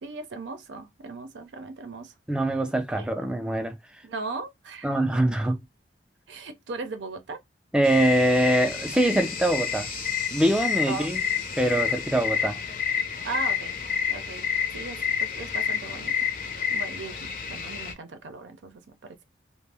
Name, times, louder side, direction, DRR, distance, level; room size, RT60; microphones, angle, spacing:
voice 1, 0.0-2.1 3.0-3.1 4.0-5.0 6.3-7.4 10.9-11.1 13.2-13.8 14.1-14.5 14.7-19.2, right 3 dB, 80° right, 0.5 m, -38 dB
voice 2, 2.3-3.8 4.8-5.6 7.7-9.9 10.3-11.2 11.6-12.6, right 1 dB, 5° right, 0.3 m, -23 dB
sound 1, 7.8-17.9, left 7 dB, 45° left, 0.6 m, -29 dB
2.5 x 2.0 x 3.2 m
head